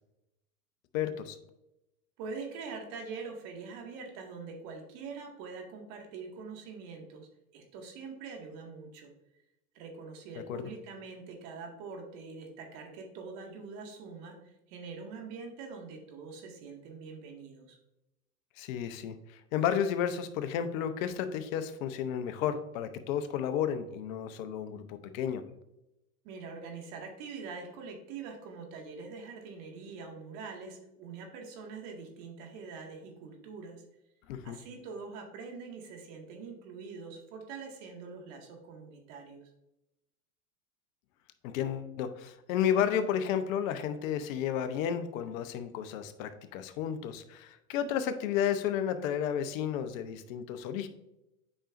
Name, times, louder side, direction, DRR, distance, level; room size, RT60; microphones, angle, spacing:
voice 1, 0.9-1.4 10.5-10.6 18.6-25.4 34.3-34.6 41.4-50.9, left 9 dB, 60° left, 10 dB, 0.8 m, -32 dB
voice 2, 2.2-7.3 7.5-9.1 9.7-17.8 26.2-33.8 34.4-39.4, right 4 dB, 55° right, 2 dB, 2.0 m, -44 dB
8.6 x 5.1 x 2.5 m, 0.88 s
hypercardioid pair, 105°, 45 cm